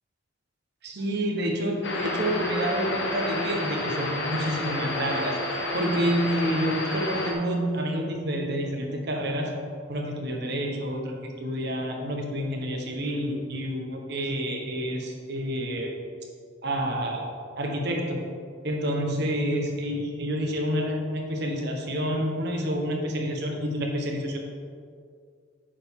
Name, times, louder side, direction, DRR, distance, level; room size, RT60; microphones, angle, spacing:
voice 1, 0.8-5.4 5.7-9.5 9.9-15.9 16.6-18.2 18.6-24.4, equal, 55° right, 2 dB, 1.1 m, -28 dB
sound 1, 1.8-7.3, left 1 dB, 60° left, 1.1 m, -30 dB
8.7 x 6.8 x 3.7 m, 2.2 s
head